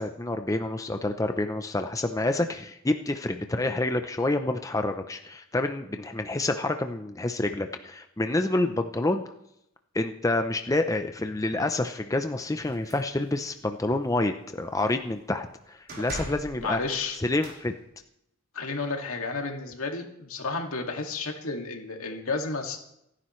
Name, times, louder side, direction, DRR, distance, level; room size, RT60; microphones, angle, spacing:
voice 1, 0.0-9.2 9.9-16.8 17.2-17.7, left 2 dB, 15° left, 6 dB, 0.6 m, -28 dB
sound 1, 12.6-13.5 13.9-14.2 14.5-15.2 15.9-17.6, right 1 dB, 45° right, 3.9 m, -42 dB
voice 2, 16.6-17.2 18.5-22.8, left 3 dB, 80° left, 2 dB, 2.2 m, -32 dB
27.5 x 10.0 x 3.2 m, 0.80 s
head